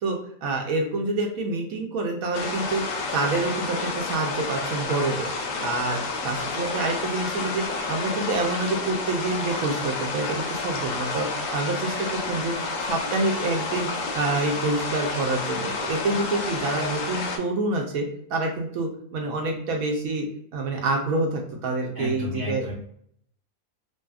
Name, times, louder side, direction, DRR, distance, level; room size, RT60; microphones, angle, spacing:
voice 1, 0.0-6.0 6.2-12.5 12.8-13.9 14.1-20.3 20.5-22.7, right 2 dB, 70° right, 1 dB, 0.9 m, -27 dB
sound 1, 2.3-17.4, left 3 dB, 70° left, 0.8 m, -30 dB
voice 2, 22.0-22.7, left 1 dB, 85° left, -5 dB, 0.4 m, -32 dB
2.7 x 2.5 x 2.3 m, 0.66 s
omnidirectional pair, 1.7 m